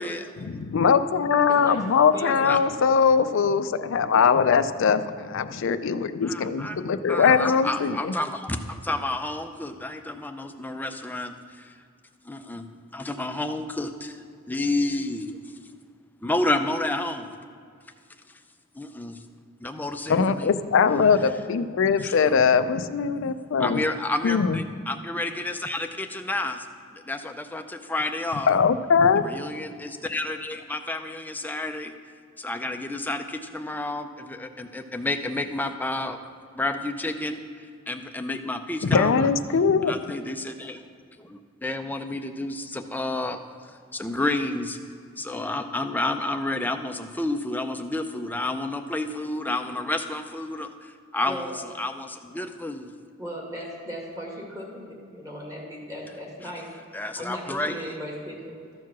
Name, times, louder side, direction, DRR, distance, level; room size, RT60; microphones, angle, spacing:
voice 1, 0.4-8.1 20.1-23.8 24.2-24.6 28.5-29.3 38.8-39.9, left 6 dB, 65° left, 12 dB, 0.4 m, -21 dB
voice 2, 1.5-1.8 2.1-2.5 28.9-29.5 51.2-51.6 53.2-56.7 57.2-58.6, equal, 20° right, -2 dB, 2.0 m, -37 dB
voice 3, 2.2-2.6 6.2-6.8 7.1-11.4 12.3-14.1 14.5-15.4 16.2-17.3 18.8-19.2 19.6-20.5 22.0-22.3 23.6-26.7 26.9-28.5 29.2-31.9 32.4-36.2 36.6-37.4 37.9-39.3 39.8-40.8 41.2-43.4 43.9-44.8 45.2-50.7 51.1-51.5 51.8-53.0 56.9-57.7, left 2 dB, 10° left, 6 dB, 0.5 m, -30 dB
13.5 x 4.7 x 6.0 m, 2.2 s
head